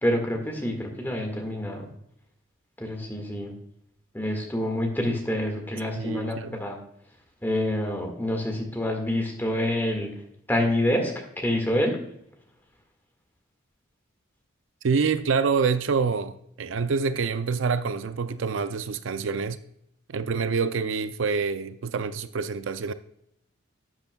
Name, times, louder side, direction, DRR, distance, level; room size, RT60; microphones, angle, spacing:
voice 1, 0.0-1.9 2.8-3.5 4.1-6.8 7.4-10.1 10.5-12.0, left 1 dB, 10° left, 1.7 m, -27 dB
voice 2, 6.0-6.6 14.8-19.6 20.1-22.9, right 5 dB, 70° right, 0.4 m, -26 dB
12.0 x 8.0 x 2.2 m
head